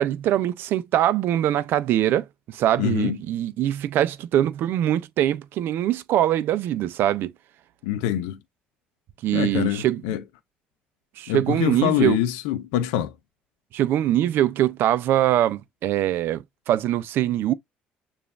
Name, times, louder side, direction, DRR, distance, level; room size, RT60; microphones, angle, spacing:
voice 1, 0.0-7.3 9.2-10.0 11.2-12.2 13.7-17.5, right 12 dB, 65° right, 0.5 m, -23 dB
voice 2, 2.8-3.2 7.8-8.4 9.3-10.2 11.3-13.1, left 12 dB, 85° left, 0.5 m, -25 dB
6.8 x 2.5 x 2.3 m
supercardioid pair, 75°, 4 cm